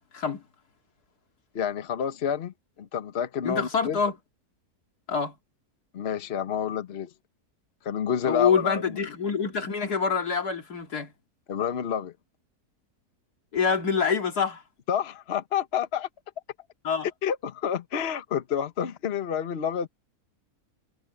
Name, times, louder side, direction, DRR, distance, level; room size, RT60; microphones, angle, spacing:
voice 1, 1.5-2.5 2.8-4.0 5.9-7.1 7.8-8.8 11.5-12.1 14.9-16.1 17.2-19.9, left 8 dB, 45° left, 1.2 m, -29 dB
voice 2, 3.4-4.1 5.1-5.3 8.2-11.1 13.5-14.6 16.8-17.1, left 6 dB, 90° left, 2.9 m, -26 dB
omnidirectional pair, 1.6 m